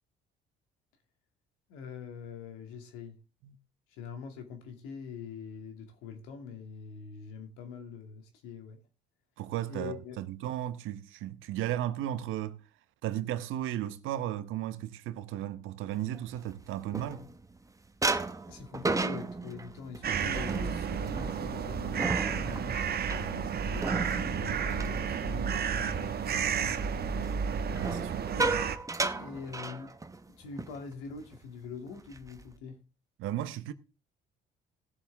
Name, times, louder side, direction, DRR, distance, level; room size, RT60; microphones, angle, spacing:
voice 1, 1.7-3.2 3.9-8.8 9.7-10.2 18.5-27.2 28.3-28.6 29.2-30.0 30.3-32.8, left 6 dB, 85° left, 2.5 m, -44 dB
voice 2, 9.4-12.6 13.0-17.3 25.4-25.6 27.8-28.3 33.2-33.7, right 12 dB, 75° right, 1.0 m, -35 dB
sound 1, 16.1-17.6 18.0-25.8 26.2-26.5 27.7-30.3 30.6-30.8 31.1-31.4 31.9-32.5, right 3 dB, 15° right, 1.1 m, -34 dB
sound 2, 20.0-28.8, right 7 dB, 50° right, 1.2 m, -32 dB
17.5 x 7.4 x 3.6 m
supercardioid pair, 70°, 21 cm